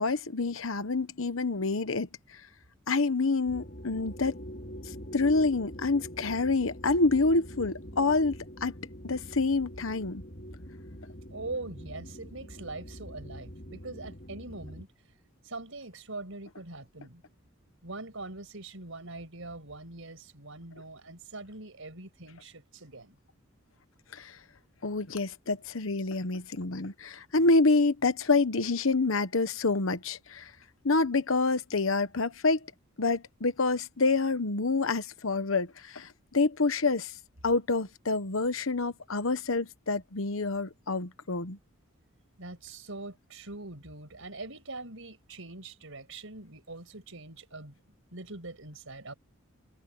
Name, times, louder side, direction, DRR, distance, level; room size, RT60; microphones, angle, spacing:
voice 1, 0.0-2.1 2.9-4.3 5.1-8.4 8.6-8.7 9.0-10.2 24.1-24.4 24.8-30.5 30.8-32.6 33.0-37.1 37.4-41.6, left 3 dB, 75° left, 1.1 m, -27 dB
sound 1, 3.4-14.9, equal, 45° left, 4.2 m, -44 dB
voice 2, 11.3-14.9 15.4-17.2 17.8-23.2 42.4-47.7 48.1-49.1, right 2 dB, 70° right, 5.8 m, -42 dB
head